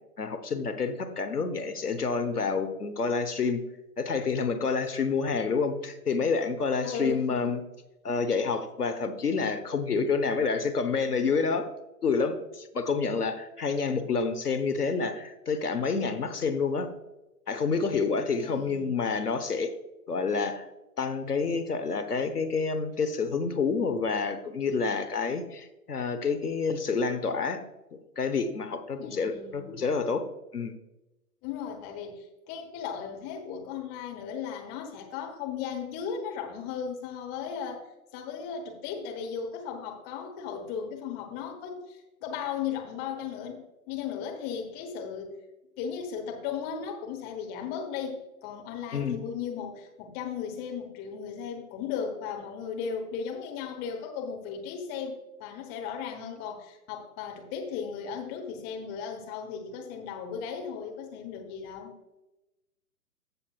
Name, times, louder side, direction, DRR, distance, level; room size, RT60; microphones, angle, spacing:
voice 1, 0.0-3.6 4.0-7.6 8.0-11.7 12.0-16.9 17.5-19.7 20.1-20.6 21.0-27.6 27.9-30.2 30.5-30.7 48.9-49.2, left 5 dB, 75° left, 8 dB, 1.1 m, -28 dB
voice 2, 6.8-7.6 18.3-18.9 27.2-27.3 29.0-29.9 31.4-37.9 38.1-45.3 45.8-61.9, left 6 dB, 20° left, 2 dB, 1.1 m, -36 dB
15.0 x 7.0 x 2.4 m, 0.98 s
figure-of-eight pair, 120°, 46 cm